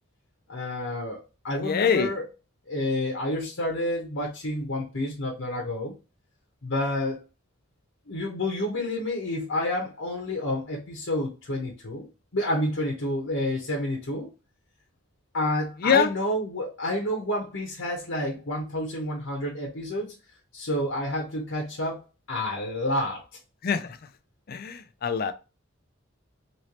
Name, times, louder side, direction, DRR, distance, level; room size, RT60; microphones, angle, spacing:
voice 1, 0.5-2.3 2.7-5.9 6.6-7.2 8.1-12.1 12.3-14.3 15.3-20.1 20.5-22.0 22.3-23.2, left 1 dB, 75° left, 0.9 m, -29 dB
voice 2, 1.6-2.1 15.8-16.1 23.6-23.9 24.5-25.3, left 6 dB, 50° left, 0.4 m, -24 dB
3.1 x 3.0 x 2.8 m
head